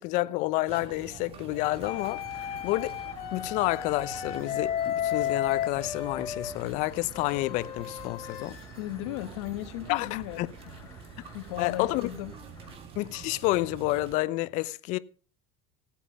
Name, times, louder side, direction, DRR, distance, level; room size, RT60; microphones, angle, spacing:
voice 1, 0.0-3.0 3.3-8.6 9.9-10.5 11.6-12.1 13.0-15.0, left 19 dB, 55° left, 0.7 m, -29 dB
sound 1, 0.7-14.2, right 7 dB, 40° right, 1.9 m, -47 dB
sound 2, 1.8-6.5 7.1-8.5, left 10 dB, 40° left, 2.6 m, -33 dB
sound 3, 1.8-12.7, left 4 dB, 20° left, 3.4 m, -52 dB
voice 2, 8.8-10.7 11.3-12.3, left 14 dB, 80° left, 1.4 m, -36 dB
17.0 x 8.4 x 5.4 m
supercardioid pair, 140°, 15 cm